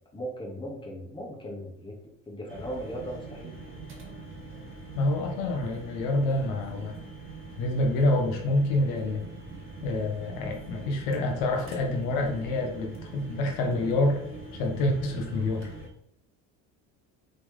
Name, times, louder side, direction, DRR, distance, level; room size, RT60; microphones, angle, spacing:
voice 1, 0.1-2.0 2.3-3.6, equal, 15° left, -3 dB, 2.3 m, -37 dB
sound 1, 2.5-15.9, right 3 dB, 35° right, 2.0 m, -43 dB
voice 2, 4.9-7.0 7.6-9.3 9.8-14.2 14.5-15.7, left 2 dB, 80° left, 2 dB, 1.3 m, -27 dB
4.5 x 4.0 x 5.3 m, 0.77 s
supercardioid pair, 95°, 35 cm